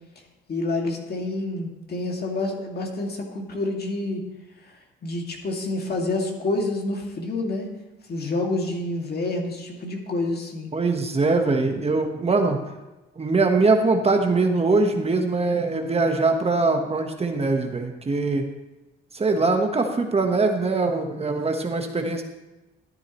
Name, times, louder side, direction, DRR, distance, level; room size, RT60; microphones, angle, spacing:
voice 1, 0.5-4.2 5.0-7.7 8.1-10.7, left 2 dB, 50° left, 1 dB, 2.3 m, -28 dB
voice 2, 10.7-12.6 13.2-18.4 19.1-22.2, right 3 dB, 30° right, 4 dB, 1.3 m, -22 dB
13.0 x 10.0 x 3.1 m, 1.1 s
cardioid pair, 75°, 20 cm